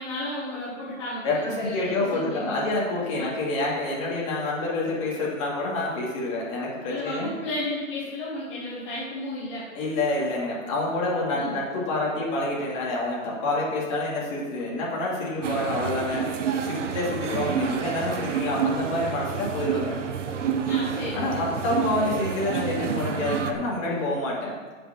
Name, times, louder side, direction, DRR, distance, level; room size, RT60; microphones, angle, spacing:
voice 1, 0.0-2.6 3.1-3.3 6.9-9.6 11.3-11.5 20.6-21.4, left 1 dB, 10° left, -10 dB, 1.0 m, -33 dB
voice 2, 1.2-7.3 9.7-20.0 21.1-24.5, left 2 dB, 25° left, -5 dB, 2.4 m, -28 dB
sound 1, 15.4-23.5, right 7 dB, 65° right, 1.1 m, -29 dB
7.9 x 7.1 x 7.2 m, 1.4 s
hypercardioid pair, 175°, 40 cm